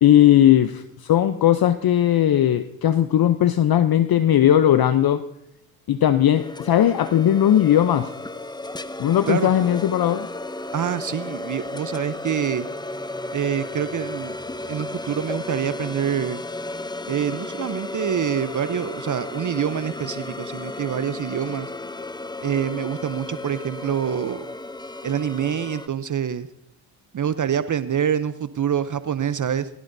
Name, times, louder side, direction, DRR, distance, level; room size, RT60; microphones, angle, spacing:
voice 1, 0.0-5.2 5.9-8.1 9.0-10.3, left 11 dB, 50° left, 11 dB, 0.7 m, -18 dB
sound 1, 6.3-25.9, left 2 dB, 10° left, 0.7 m, -34 dB
voice 2, 10.7-12.7 13.3-14.4 14.7-16.4 17.1-21.7 22.4-24.5 25.0-26.5 27.1-29.7, right 8 dB, 40° right, 13 dB, 0.7 m, -26 dB
20.5 x 16.5 x 2.7 m, 0.80 s
supercardioid pair, 55°, 47 cm